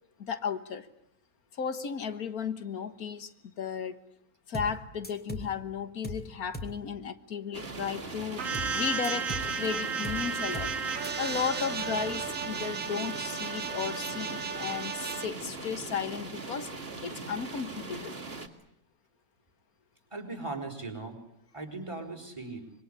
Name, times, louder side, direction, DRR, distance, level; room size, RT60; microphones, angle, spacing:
voice 1, 0.2-0.9 1.5-4.0 4.5-10.7 11.2-16.7 17.0-18.2, left 7 dB, 90° left, 12 dB, 1.9 m, -34 dB
sound 1, 4.5-4.8 5.0-5.5 6.0-6.3 6.5-6.8 8.5-8.8 9.0-9.5 10.0-10.3 10.5-10.8 11.0-11.1, equal, 5° left, 2.8 m, -38 dB
sound 2, 7.5-18.5, right 3 dB, 45° right, 2.5 m, -40 dB
sound 3, 8.4-15.3, right 5 dB, 65° right, 1.7 m, -34 dB
voice 2, 20.1-21.2 21.5-22.6, right 3 dB, 20° right, 2 dB, 4.8 m, -38 dB
26.0 x 22.5 x 9.9 m, 0.76 s
omnidirectional pair, 1.5 m